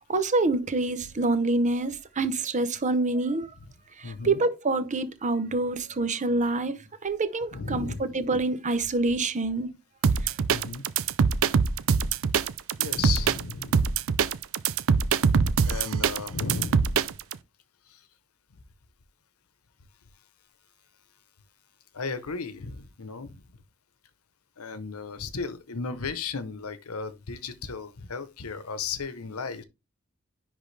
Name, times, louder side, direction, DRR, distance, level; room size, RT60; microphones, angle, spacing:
voice 1, 0.1-3.5 4.0-6.8 7.0-9.7, right 2 dB, 35° right, 0.8 m, -26 dB
voice 2, 4.0-4.4 7.5-8.2 10.5-10.8 12.8-13.9 15.6-17.0 17.9-18.0 21.9-23.4 24.6-29.6, left 4 dB, 90° left, 0.9 m, -35 dB
sound 1, 10.0-17.3, right 6 dB, 65° right, 0.5 m, -23 dB
10.0 x 3.6 x 3.3 m
head